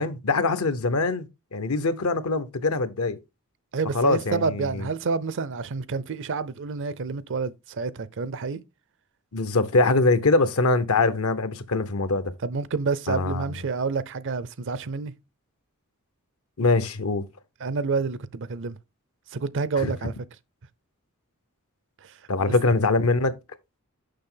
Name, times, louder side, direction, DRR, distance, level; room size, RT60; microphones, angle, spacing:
voice 1, 0.0-3.2 3.9-4.9 9.3-12.3 13.1-13.6 16.6-17.2 19.8-19.9 22.3-23.3, left 3 dB, 70° left, 0.8 m, -23 dB
voice 2, 3.7-8.6 12.4-15.1 17.6-18.8 19.3-20.1 22.0-22.5, right 4 dB, 60° right, 0.5 m, -29 dB
6.7 x 5.8 x 3.8 m
head